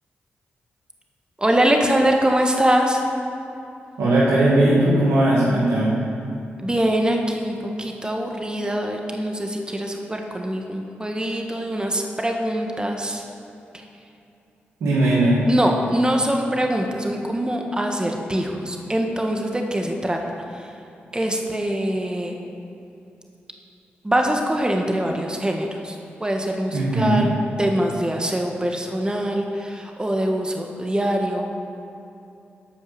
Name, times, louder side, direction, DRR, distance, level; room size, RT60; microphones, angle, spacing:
voice 1, 1.4-3.0 6.6-13.2 15.5-20.2 21.1-22.4 24.0-27.3 27.6-31.4, right 1 dB, 20° right, 2 dB, 1.5 m, -23 dB
voice 2, 4.0-5.9 14.8-15.4 26.7-27.3, right 1 dB, 90° right, -7 dB, 2.2 m, -18 dB
13.0 x 5.4 x 6.9 m, 2.8 s
supercardioid pair, 45°, 5 cm